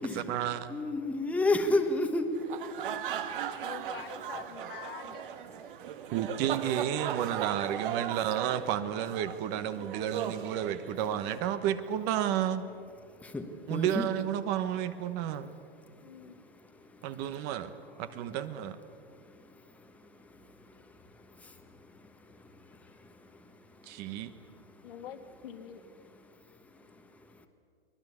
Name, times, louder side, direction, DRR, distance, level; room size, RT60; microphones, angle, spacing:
voice 1, 0.1-0.7 6.1-12.7 13.7-15.5 17.0-17.7 18.0-18.8 23.8-24.3, right 10 dB, 35° right, 12 dB, 1.2 m, -31 dB
voice 2, 0.7-3.7 13.1-14.1 15.9-17.0 18.9-24.8 26.3-27.5, left 2 dB, 5° left, 5 dB, 1.3 m, -35 dB
sound 1, 2.3-11.4, right 9 dB, 60° right, 1.7 m, -38 dB
voice 3, 3.6-5.3 16.0-16.4 24.8-25.8, left 9 dB, 65° left, 6 dB, 2.3 m, -45 dB
24.0 x 18.5 x 8.5 m, 2.3 s
hypercardioid pair, 140°, 30 cm